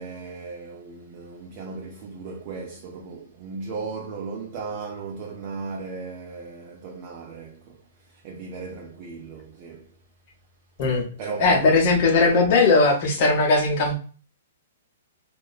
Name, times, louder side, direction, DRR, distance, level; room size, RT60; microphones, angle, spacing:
voice 1, 0.0-9.9 11.2-11.8, right 4 dB, 35° right, 0.4 m, -36 dB
voice 2, 11.4-14.0, left 3 dB, 40° left, 0.7 m, -19 dB
2.8 x 2.2 x 2.2 m
hypercardioid pair, 155°, 0 cm